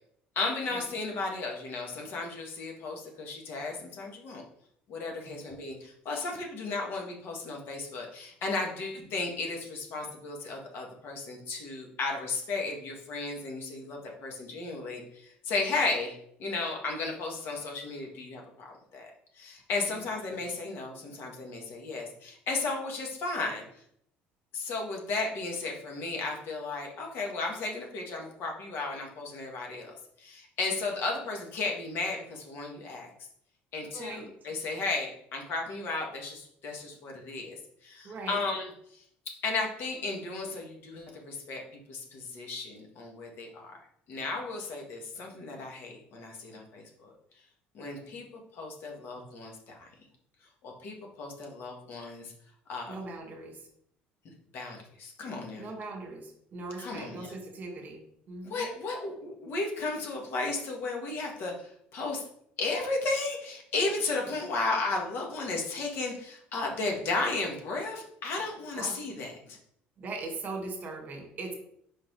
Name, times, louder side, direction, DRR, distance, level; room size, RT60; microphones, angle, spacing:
voice 1, 0.4-4.4 4.9-19.1 19.4-23.6 24.5-33.1 33.7-39.0 39.4-43.8 44.1-47.1 47.7-49.9 50.6-52.3 52.7-53.0 54.5-55.7 56.8-57.3 58.4-62.2 62.6-69.6, left 3 dB, 60° left, 1 dB, 1.8 m, -34 dB
voice 2, 33.9-34.3 38.0-38.4 52.9-53.6 55.6-58.0 58.3-58.7 68.8-69.0 70.0-71.5, right 3 dB, 45° right, 3 dB, 1.9 m, -40 dB
4.9 x 4.6 x 4.7 m, 0.68 s
cardioid pair, 100°, 4 cm